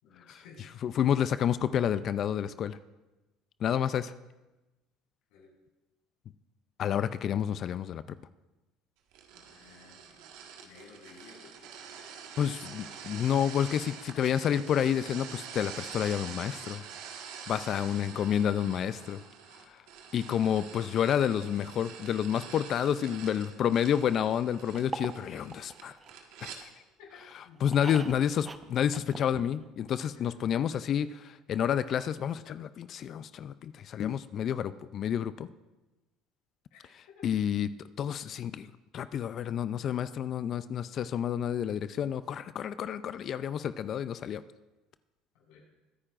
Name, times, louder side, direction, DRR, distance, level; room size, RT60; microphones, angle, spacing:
voice 1, 0.0-0.6 5.3-5.5 9.3-10.2 10.6-11.7 27.0-28.0 30.1-30.3 36.7-36.8 37.1-37.3 45.3-45.6, left 4 dB, 80° left, -3 dB, 5.0 m, -54 dB
voice 2, 0.8-2.8 3.6-4.1 6.8-8.0 12.4-16.8 17.5-19.2 20.1-25.9 26.4-26.7 27.6-35.5 37.2-37.7 38.0-38.7 38.9-44.4, left 9 dB, 50° left, 14 dB, 0.4 m, -29 dB
sound 1, 9.1-26.6, right 7 dB, 80° right, 1.6 m, -46 dB
sound 2, 24.7-26.8 27.2-29.9 30.1-30.2 30.4-30.5, right 4 dB, 20° right, 0.7 m, -43 dB
22.0 x 9.9 x 2.5 m, 1.1 s
supercardioid pair, 95°, 0 cm